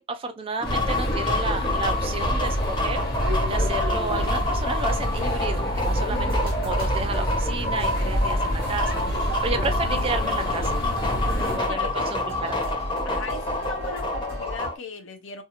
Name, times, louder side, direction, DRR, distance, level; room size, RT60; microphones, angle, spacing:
voice 1, 0.0-3.0 3.4-9.0 9.4-10.8 11.5-12.6, right 3 dB, 25° right, 0.3 m, -31 dB
sound 1, 0.6-11.6, equal, 50° left, 0.9 m, -27 dB
sound 2, 0.6-14.7, left 2 dB, 20° left, 0.5 m, -28 dB
sound 3, 6.3-14.7, equal, 45° right, 1.0 m, -35 dB
voice 2, 11.2-11.9 13.0-15.4, left 4 dB, 65° left, 0.6 m, -38 dB
2.7 x 2.3 x 2.8 m
head